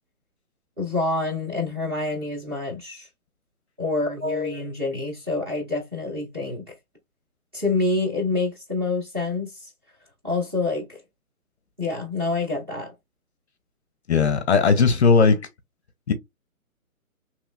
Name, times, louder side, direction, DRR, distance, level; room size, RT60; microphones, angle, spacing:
voice 1, 0.8-3.1 3.8-6.8 7.5-9.7 10.2-11.0 11.8-12.9, left 3 dB, 15° right, 0.7 m, -27 dB
voice 2, 14.1-15.5 16.1-16.2, left 5 dB, 50° left, 0.6 m, -18 dB
3.0 x 2.9 x 2.4 m
hypercardioid pair, 165°, 44 cm